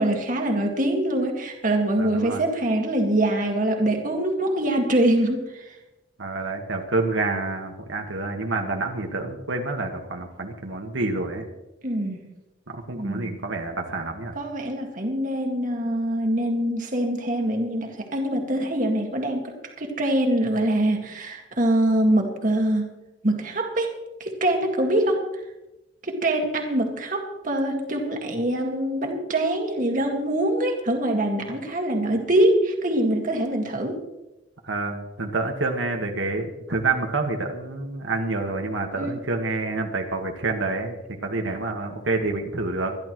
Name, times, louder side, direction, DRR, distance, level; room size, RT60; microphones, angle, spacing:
voice 1, 0.0-5.8 11.8-12.3 12.9-13.4 14.4-23.0 23.2-25.3 26.0-34.0 38.9-39.1, right 1 dB, 45° right, 3 dB, 1.9 m, -24 dB
voice 2, 2.0-2.4 6.2-11.5 12.7-14.3 34.6-40.9 41.2-42.9, right 3 dB, 85° right, 3 dB, 1.6 m, -28 dB
25.5 x 11.5 x 3.1 m, 0.98 s
head